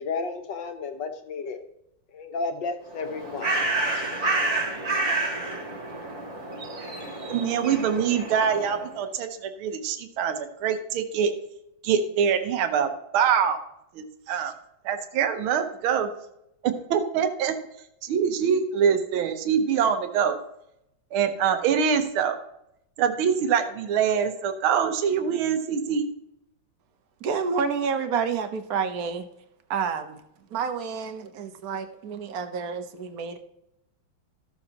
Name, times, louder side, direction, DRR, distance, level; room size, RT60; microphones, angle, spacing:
voice 1, 0.0-1.6 2.1-3.5, left 4 dB, 60° left, 6 dB, 1.6 m, -32 dB
Bird, 2.9-8.9, right 2 dB, 35° right, 1.8 m, -29 dB
voice 2, 7.3-11.3 11.8-13.6 13.9-14.5 14.8-16.1 16.6-17.5 18.0-20.4 21.1-22.4 23.0-26.0, right 7 dB, 75° right, 7 dB, 1.7 m, -24 dB
voice 3, 27.2-29.3 29.7-30.2 30.5-33.4, right 6 dB, 55° right, 7 dB, 1.2 m, -29 dB
14.0 x 7.2 x 2.9 m, 0.80 s
omnidirectional pair, 2.4 m